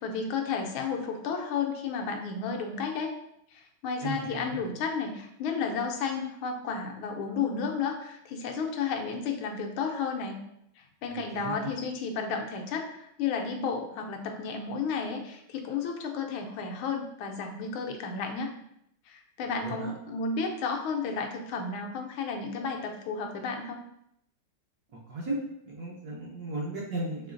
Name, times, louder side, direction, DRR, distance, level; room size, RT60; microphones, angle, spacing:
voice 1, 0.0-3.1 3.5-10.4 10.8-18.5 19.1-23.8, left 5 dB, 80° left, 3 dB, 1.4 m, -32 dB
voice 2, 4.0-4.6 11.1-11.7 19.6-19.9 25.1-25.4 25.6-27.3, right 2 dB, 60° right, -4 dB, 1.1 m, -35 dB
5.0 x 3.1 x 2.5 m, 0.75 s
omnidirectional pair, 2.3 m